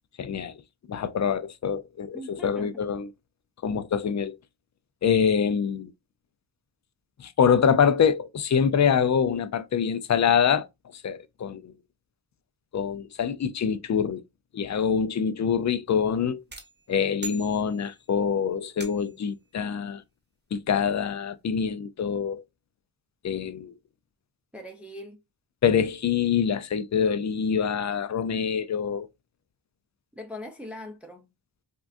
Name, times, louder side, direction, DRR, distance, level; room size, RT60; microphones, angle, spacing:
voice 1, 0.2-0.5 0.9-3.1 3.6-4.4 5.0-5.9 7.2-10.7 11.0-11.7 12.7-14.2 14.5-16.4 16.9-20.0 20.5-22.4 23.2-23.7 25.6-29.1, left 7 dB, 40° left, 0.4 m, -25 dB
voice 2, 2.1-2.8 24.5-25.2 30.1-31.3, left 1 dB, 5° right, 0.6 m, -41 dB
sound 1, 16.5-18.1 18.8-19.3, right 2 dB, 25° right, 1.0 m, -42 dB
3.6 x 2.3 x 2.5 m
cardioid pair, 55°, 44 cm